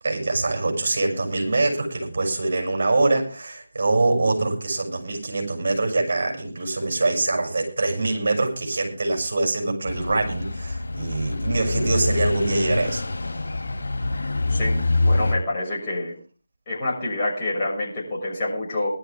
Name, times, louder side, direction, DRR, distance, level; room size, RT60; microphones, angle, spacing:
voice 1, 0.0-13.1, right 2 dB, 45° right, 2 dB, 7.1 m, -24 dB
sound 1, 9.9-15.3, left 2 dB, 60° left, 4.2 m, -25 dB
voice 2, 15.0-16.2 16.7-18.9, left 2 dB, 20° left, -5 dB, 6.3 m, -27 dB
20.0 x 12.5 x 3.6 m, 0.37 s
figure-of-eight pair, 160°, 0 cm